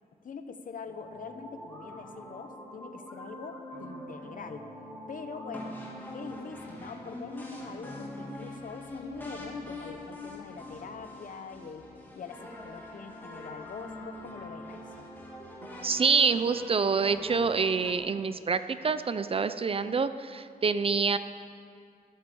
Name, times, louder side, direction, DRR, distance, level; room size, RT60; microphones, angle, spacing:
voice 1, 0.2-4.7 5.1-5.8 6.1-11.9 12.2-15.1, left 5 dB, 55° left, 8 dB, 1.1 m, -43 dB
sound 1, 0.9-17.9, left 1 dB, 10° left, 2.5 m, -43 dB
voice 2, 15.8-21.2, right 5 dB, 35° right, 12 dB, 0.4 m, -26 dB
14.0 x 12.0 x 7.0 m, 2.3 s
wide cardioid pair, 170°, 16 cm